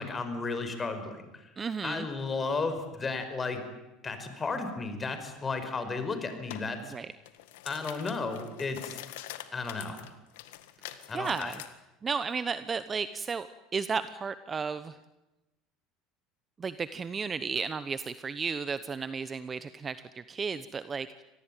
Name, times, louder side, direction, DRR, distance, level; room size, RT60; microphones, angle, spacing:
voice 1, 0.0-1.5 1.8-3.6 4.0-6.9 7.6-9.0 9.5-10.0 11.1-11.5, left 4 dB, 25° left, 9 dB, 5.1 m, -34 dB
voice 2, 1.6-2.1 6.9-7.1 10.8-11.6 12.0-15.0 16.6-21.2, right 5 dB, 30° right, 13 dB, 1.0 m, -34 dB
sound 1, 6.5-6.7 7.1-11.7, left 14 dB, 85° left, 1.8 m, -44 dB
26.0 x 19.0 x 9.2 m, 0.98 s
supercardioid pair, 100°, 0 cm